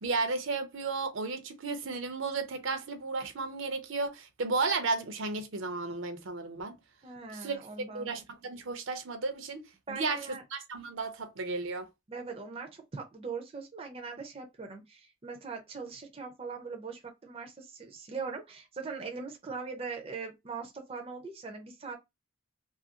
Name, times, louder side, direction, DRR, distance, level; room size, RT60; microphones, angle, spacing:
voice 1, 0.0-6.8 7.3-7.6 7.9-10.2 10.5-11.9, right 3 dB, 75° right, 0.6 m, -33 dB
voice 2, 7.0-8.1 9.9-10.4 12.1-22.0, right 4 dB, 30° right, 0.5 m, -41 dB
2.7 x 2.4 x 2.7 m
head